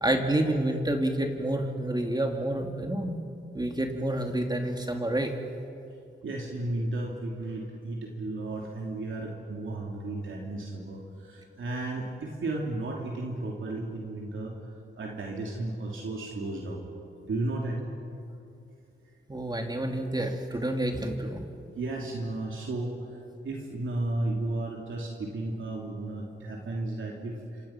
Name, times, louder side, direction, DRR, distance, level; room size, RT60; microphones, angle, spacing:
voice 1, 0.0-3.2 3.5-5.3 19.3-21.4, right 1 dB, 20° right, 3 dB, 2.7 m, -28 dB
voice 2, 6.2-14.5 15.0-16.8 17.2-17.8 21.7-23.0 23.4-27.6, right 2 dB, 75° right, -1 dB, 3.0 m, -34 dB
27.0 x 26.5 x 5.9 m, 2.6 s
cardioid pair, 70°, 21 cm